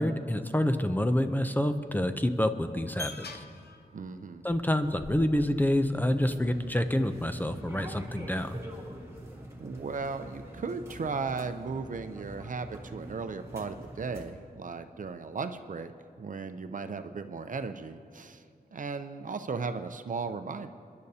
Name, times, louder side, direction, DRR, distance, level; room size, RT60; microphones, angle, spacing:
voice 1, 0.0-3.3 4.4-8.6, left 1 dB, 10° left, 8 dB, 0.5 m, -27 dB
sound 1, 2.7-6.8, left 3 dB, 85° left, 0.8 m, -46 dB
voice 2, 3.9-4.4 9.6-15.9 16.2-18.4 18.7-20.7, right 4 dB, 55° right, 9 dB, 0.6 m, -36 dB
sound 2, 5.9-14.3, right 1 dB, 15° right, 1.7 m, -45 dB
30.0 x 10.5 x 2.8 m, 2.4 s
wide cardioid pair, 110°, 16 cm